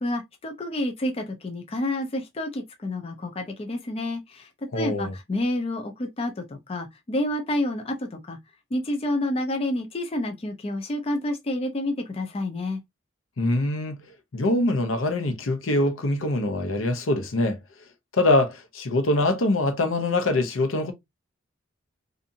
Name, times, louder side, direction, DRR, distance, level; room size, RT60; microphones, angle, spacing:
voice 1, 0.0-4.5 4.7-8.4 8.7-12.8, left 1 dB, 30° left, 0.4 m, -29 dB
voice 2, 4.7-5.1 13.4-14.0 14.3-17.6 18.1-20.9, left 2 dB, 75° left, 0.7 m, -23 dB
2.5 x 2.5 x 2.6 m
head